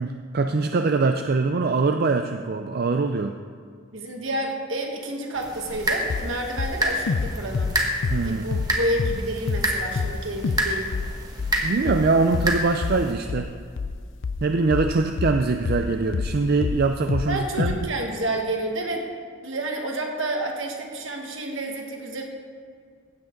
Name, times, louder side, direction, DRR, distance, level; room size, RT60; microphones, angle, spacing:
voice 1, 0.0-3.4 8.1-8.6 11.6-13.5 14.4-17.8, right 3 dB, 50° right, 6 dB, 0.4 m, -23 dB
voice 2, 3.9-7.7 8.2-10.9 17.3-19.1 19.4-22.2, right 1 dB, 70° right, 1 dB, 1.6 m, -29 dB
sound 1, 5.4-13.1, right 1 dB, 20° right, 1.2 m, -29 dB
sound 2, 5.7-5.8 6.1-6.3 6.6-8.7 9.0-9.2 9.5-9.7 10.0-10.2 10.4-10.7 10.9-16.4 16.6-17.3 17.6-17.8, left 4 dB, 65° left, 0.4 m, -27 dB
15.5 x 8.2 x 3.9 m, 2.1 s
head